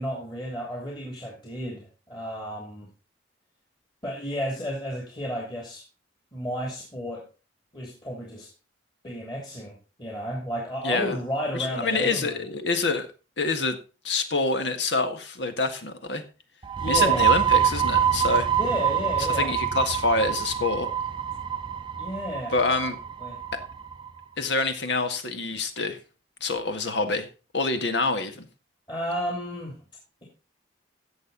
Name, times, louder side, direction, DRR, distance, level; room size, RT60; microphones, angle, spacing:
voice 1, 0.0-2.9 4.0-5.8 6.3-7.2 7.7-8.5 9.0-12.4 16.8-17.3 18.5-19.5 22.0-22.9 23.2-23.4 28.9-29.8, equal, 25° left, 0 dB, 2.8 m, -32 dB
voice 2, 10.8-11.2 11.5-13.1 13.4-13.8 14.0-16.2 16.9-18.5 19.4-20.9 22.5-23.0 23.5-23.6 24.4-26.0 26.4-27.3 27.5-28.5, left 3 dB, 70° left, 8 dB, 1.8 m, -26 dB
sound 1, 16.6-24.1, right 9 dB, 25° right, 0.6 m, -25 dB
16.5 x 6.6 x 4.0 m, 0.33 s
head